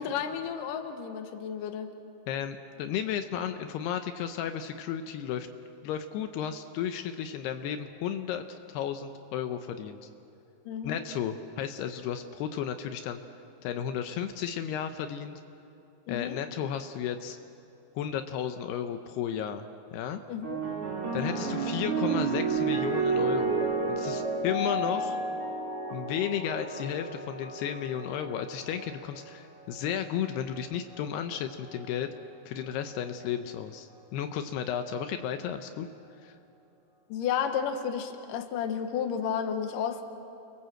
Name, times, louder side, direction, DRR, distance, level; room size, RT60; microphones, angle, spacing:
voice 1, 0.0-1.9 10.7-11.0 16.1-16.4 20.3-20.6 21.0-21.4 37.1-40.0, left 7 dB, 65° left, 6 dB, 2.7 m, -32 dB
voice 2, 2.3-5.5 5.8-10.1 10.8-13.2 13.6-15.4 16.1-17.4 18.0-19.6 19.9-20.2 21.1-25.2 25.9-32.1 32.5-35.9 36.2-36.4, left 9 dB, 80° left, 8 dB, 2.9 m, -33 dB
sound 1, 20.4-29.0 29.9-30.3, right 4 dB, 35° right, 4.1 m, -31 dB
29.5 x 22.5 x 7.8 m, 2.8 s
omnidirectional pair, 4.7 m